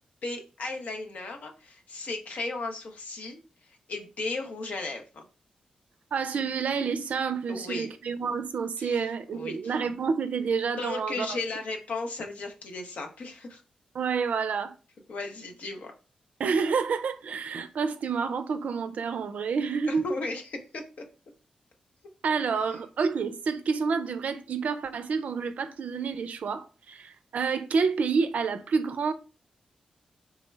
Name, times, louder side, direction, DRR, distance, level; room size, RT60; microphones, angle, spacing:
voice 1, 0.2-5.2 7.5-7.9 8.8-9.8 10.8-13.6 15.1-15.9 19.9-20.8 22.7-22.8, left 3 dB, 65° left, 0.6 m, -35 dB
voice 2, 6.1-11.4 13.9-14.7 16.4-20.1 22.2-29.1, right 5 dB, 70° right, 0.4 m, -29 dB
3.3 x 2.1 x 3.2 m
supercardioid pair, 45°, 3 cm